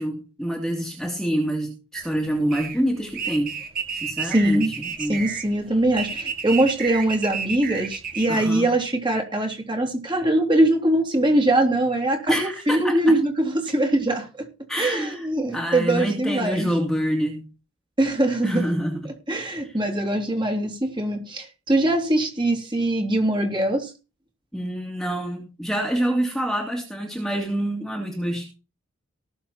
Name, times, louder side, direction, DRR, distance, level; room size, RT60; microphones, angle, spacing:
voice 1, 0.0-3.5 3.9-5.2 8.3-8.7 12.3-13.2 14.7-15.3 15.5-17.5 18.4-19.1 24.5-28.4, equal, ahead, 1 dB, 2.5 m, -26 dB
sound 1, 1.9-8.3, right 6 dB, 45° right, 2.2 m, -31 dB
voice 2, 4.2-4.7 5.1-14.5 14.8-16.7 18.0-18.6 19.3-23.9, right 1 dB, 20° right, 3 dB, 3.1 m, -22 dB
18.5 x 7.1 x 4.3 m, 0.31 s
head